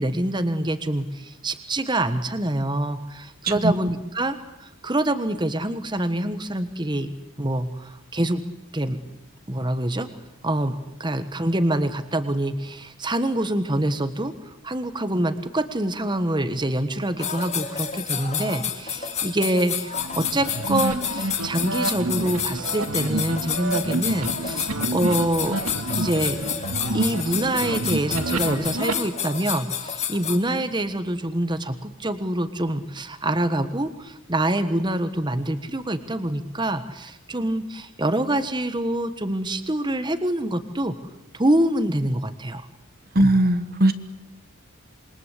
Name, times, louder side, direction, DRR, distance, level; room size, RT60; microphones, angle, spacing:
voice 1, 0.0-7.1 7.4-8.4 8.7-9.0 9.5-10.1 10.4-14.3 14.6-25.5 26.0-26.4 26.9-40.9 41.3-42.7 43.2-43.3, right 1 dB, 20° right, 10 dB, 1.4 m, -25 dB
sound 1, 17.2-30.4, left 8 dB, 30° left, 2.3 m, -30 dB
sound 2, 20.0-28.9, right 2 dB, 80° right, 2.1 m, -29 dB
voice 2, 43.1-43.9, right 1 dB, 45° right, 11 dB, 1.4 m, -18 dB
27.5 x 23.0 x 8.4 m, 0.86 s
head